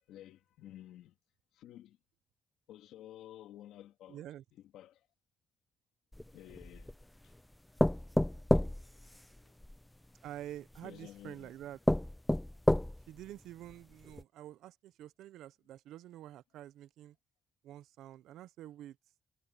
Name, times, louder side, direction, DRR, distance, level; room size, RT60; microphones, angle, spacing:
voice 1, 0.1-1.2 1.5-2.0 2.7-4.2 4.5-5.1 6.3-7.0 7.2-7.3 7.9-8.0 9.0-9.1 9.4-9.5 10.8-11.5, left 12 dB, 85° left, 3.2 m, -52 dB
voice 2, 4.1-4.4 10.2-11.8 13.1-17.2 17.6-19.0, right 12 dB, 85° right, 0.6 m, -48 dB
sound 1, 6.1-7.0 7.8-9.8 10.7-10.8 11.4-11.5 11.9-13.2 13.7-13.8 14.1-14.2, left 1 dB, 5° left, 0.3 m, -30 dB
cardioid pair, 90°, 0 cm